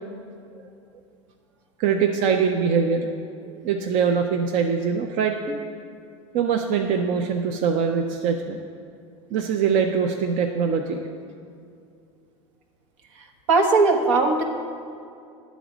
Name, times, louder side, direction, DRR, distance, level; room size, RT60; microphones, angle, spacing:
voice 1, 1.8-3.1 3.4-5.6 6.3-8.6 9.3-11.0, right 6 dB, 55° right, 3 dB, 0.6 m, -23 dB
voice 2, 13.5-14.4, right 3 dB, 75° right, 3 dB, 1.0 m, -18 dB
10.0 x 4.1 x 6.1 m, 2.4 s
hypercardioid pair, 95°, 16 cm